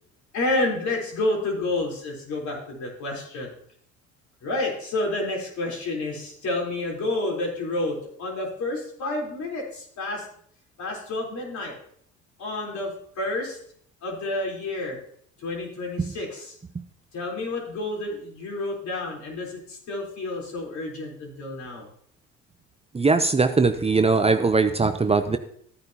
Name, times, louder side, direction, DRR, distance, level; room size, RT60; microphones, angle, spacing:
voice 1, 0.3-3.5 4.4-10.3 10.8-11.8 12.4-13.6 14.0-15.0 15.4-16.6 17.1-21.9, left 2 dB, 60° left, -1 dB, 4.0 m, -29 dB
voice 2, 22.9-25.4, right 4 dB, 20° right, 9 dB, 0.7 m, -21 dB
13.5 x 9.1 x 2.9 m, 0.63 s
hypercardioid pair, 60°, 33 cm